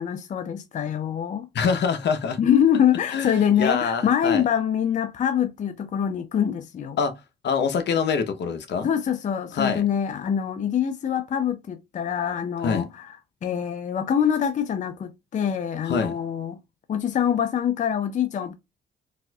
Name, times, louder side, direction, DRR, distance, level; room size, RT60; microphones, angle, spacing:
voice 1, 0.0-1.5 2.4-7.0 8.8-13.1 13.4-16.6 16.9-18.5, left 9 dB, 40° left, 0.5 m, -24 dB
voice 2, 1.5-2.4 3.1-4.4 7.0-7.1 7.4-8.9 9.5-9.8 12.6-12.9 15.8-16.1, left 6 dB, 60° left, 0.9 m, -25 dB
4.1 x 2.6 x 2.3 m
cardioid pair, 90°, 20 cm